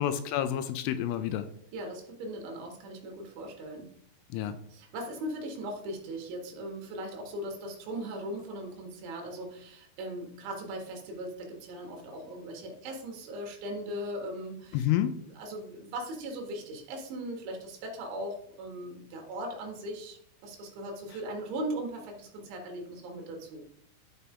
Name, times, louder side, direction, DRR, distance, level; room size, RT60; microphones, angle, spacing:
voice 1, 0.0-1.5 4.3-4.6 14.7-15.1, left 11 dB, 85° left, 11 dB, 3.1 m, -29 dB
voice 2, 1.7-3.9 4.7-14.9 15.4-23.7, right 1 dB, 70° right, 2 dB, 3.7 m, -39 dB
12.5 x 5.6 x 3.7 m, 0.68 s
omnidirectional pair, 6.0 m